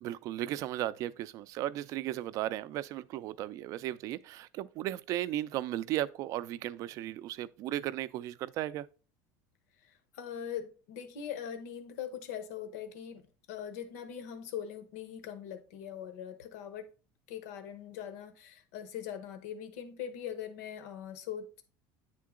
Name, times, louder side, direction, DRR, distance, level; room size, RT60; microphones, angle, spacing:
voice 1, 0.0-8.9, right 13 dB, 40° right, 0.3 m, -35 dB
voice 2, 9.8-16.9 17.3-21.6, left 9 dB, 80° left, 1.0 m, -41 dB
9.4 x 3.7 x 3.7 m
cardioid pair, 160°, 8 cm